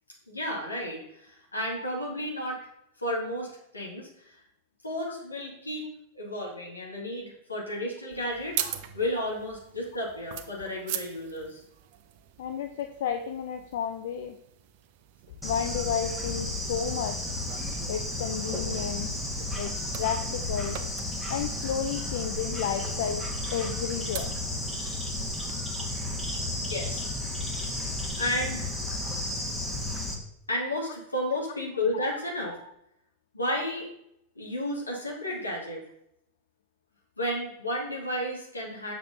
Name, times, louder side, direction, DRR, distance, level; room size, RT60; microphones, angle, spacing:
voice 1, 0.3-2.7 3.0-4.4 4.8-5.9 6.1-8.7 8.9-11.6 26.6-27.1 28.1-28.8 30.5-32.6 33.3-33.9 34.4-35.8 37.2-38.9, left 1 dB, 80° left, -3 dB, 2.0 m, -32 dB
sound 1, 8.1-25.5, right 11 dB, 50° right, 0.6 m, -43 dB
voice 2, 12.4-14.4 15.4-17.2 17.9-19.1 19.6-19.7 20.0-20.8 21.3-23.2 23.5-24.3 31.9-32.1, left 8 dB, 55° left, 7 dB, 0.4 m, -32 dB
Bird / Insect, 15.4-30.1, left 2 dB, 5° left, 1.2 m, -33 dB
6.7 x 6.7 x 2.7 m, 0.77 s
figure-of-eight pair, 90°, 0 cm